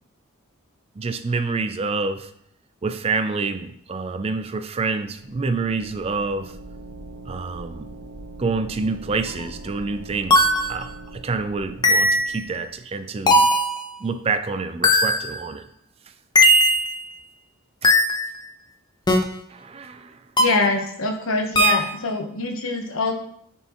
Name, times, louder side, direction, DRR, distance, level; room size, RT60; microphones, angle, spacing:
voice 1, 1.0-2.3 2.8-6.5 7.3-7.9 8.4-13.5 14.0-15.6 17.8-17.9 19.5-20.2, right 4 dB, 30° right, 9 dB, 0.4 m, -27 dB
sound 1, 5.0-12.7, right 2 dB, 70° right, 1.2 m, -41 dB
sound 2, 9.3-9.4 10.3-10.7 11.8-12.4 13.3-13.8 14.8-15.4 16.4-17.0 17.8-18.3 19.1-19.2 20.4-20.7 21.6-21.9, equal, 20° left, 0.7 m, -17 dB
voice 2, 20.4-23.1, left 2 dB, 80° left, 4 dB, 1.0 m, -24 dB
10.0 x 4.4 x 3.0 m, 0.68 s
head